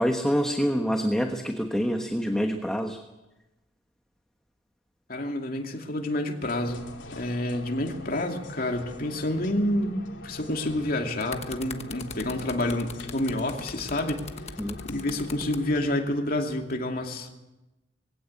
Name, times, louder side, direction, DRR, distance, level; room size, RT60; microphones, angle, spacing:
voice 1, 0.0-3.0 14.6-14.8, equal, 5° left, 4 dB, 1.2 m, -26 dB
voice 2, 5.1-14.2 14.8-17.3, left 1 dB, 50° left, 2 dB, 2.7 m, -29 dB
sound 1, 6.4-16.0, left 2 dB, 90° left, 2.9 m, -44 dB
sound 2, 10.9-15.6 16.5-16.7, left 4 dB, 35° left, 1.2 m, -41 dB
22.0 x 16.5 x 8.5 m, 1.0 s
head